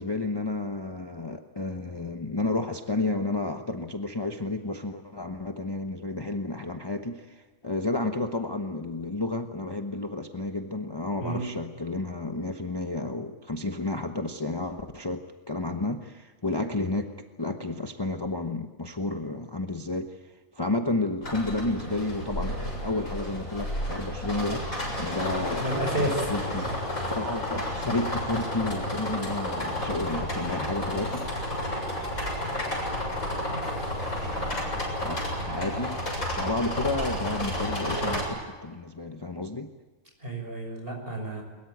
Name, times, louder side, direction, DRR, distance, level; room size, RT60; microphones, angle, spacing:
voice 1, 0.0-17.1 17.4-24.7 25.0-25.7 26.0-26.7 27.2-31.3 35.0-36.0 36.3-39.7, left 2 dB, 20° left, 5 dB, 1.0 m, -31 dB
sound 1, 21.2-38.2, left 1 dB, 80° left, 7.5 m, -31 dB
voice 2, 25.6-26.2 27.1-27.2 40.2-41.4, right 1 dB, 40° right, 2 dB, 6.3 m, -30 dB
22.5 x 22.0 x 9.3 m, 1.3 s
omnidirectional pair, 1.4 m